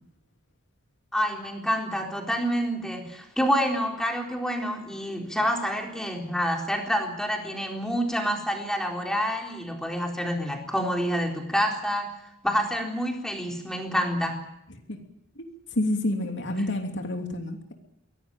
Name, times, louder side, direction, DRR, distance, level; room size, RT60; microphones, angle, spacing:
voice 1, 1.1-12.1 12.4-14.4, equal, 5° left, 2 dB, 4.0 m, -27 dB
voice 2, 15.3-17.7, left 1 dB, 55° left, 4 dB, 3.0 m, -29 dB
23.5 x 17.5 x 9.1 m, 0.78 s
head